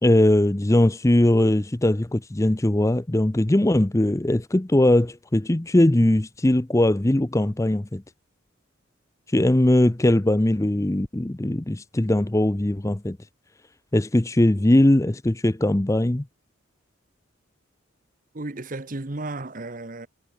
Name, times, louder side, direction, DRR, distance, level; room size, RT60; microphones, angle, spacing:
voice 1, 0.0-8.0 9.3-13.2 13.9-16.3, left 1 dB, 15° left, 0.6 m, -20 dB
voice 2, 18.3-20.1, right 2 dB, 40° right, 1.1 m, -33 dB
head